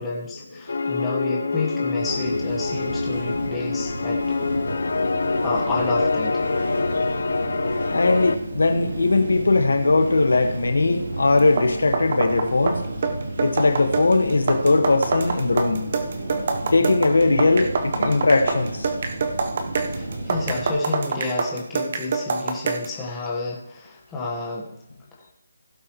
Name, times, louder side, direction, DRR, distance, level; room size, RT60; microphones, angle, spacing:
voice 1, 0.0-4.2 5.4-6.4 20.3-24.7, left 3 dB, 10° left, -4 dB, 1.4 m, -30 dB
sound 1, 0.7-8.4, left 4 dB, 70° left, 0.8 m, -25 dB
sound 2, 2.0-20.7, right 2 dB, 75° right, 3.6 m, -33 dB
voice 2, 7.9-12.8 13.4-15.9 16.7-18.9, left 3 dB, 90° left, 6 dB, 1.5 m, -19 dB
sound 3, 11.4-23.0, right 4 dB, 40° right, 1.0 m, -26 dB
16.0 x 8.0 x 3.1 m, 0.80 s
hypercardioid pair, 175°, 0 cm